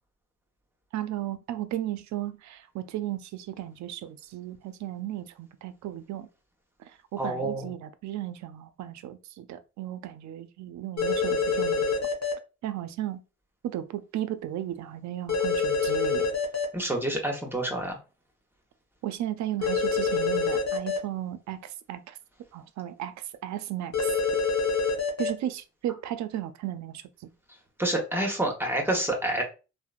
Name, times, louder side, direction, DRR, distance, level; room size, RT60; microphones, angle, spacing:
voice 1, 0.9-6.3 6.8-12.0 12.6-13.2 13.6-16.3 19.0-22.2 22.5-24.1 25.2-27.0, right 12 dB, 70° right, 0.4 m, -35 dB
voice 2, 7.2-7.7 16.7-18.0 27.8-29.4, right 1 dB, 10° right, 0.9 m, -28 dB
sound 1, 11.0-12.3 15.3-16.6 19.6-21.0 23.9-25.3, left 4 dB, 65° left, 1.0 m, -26 dB
2.9 x 2.1 x 2.4 m
supercardioid pair, 60°, 29 cm